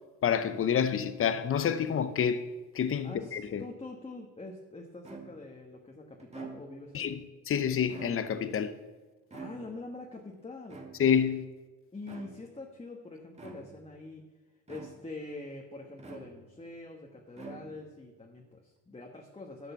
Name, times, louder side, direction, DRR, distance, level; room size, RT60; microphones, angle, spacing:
voice 1, 0.2-2.4 2.7-3.6 6.9-7.2 7.5-8.7 11.0-11.4, left 8 dB, 40° left, 0.8 m, -28 dB
voice 2, 3.0-7.2 9.3-10.8 11.9-14.3 14.7-19.7, left 2 dB, 20° left, 1.5 m, -45 dB
sound 1, 5.0-5.6 6.2-7.0 7.8-8.5 9.3-10.0 10.7-11.3 12.0-12.6 13.3-13.9 14.7-15.3 16.0-16.7 17.3-18.0, right 4 dB, 20° right, 2.2 m, -47 dB
12.0 x 6.6 x 7.0 m
cardioid pair, 80°, 32 cm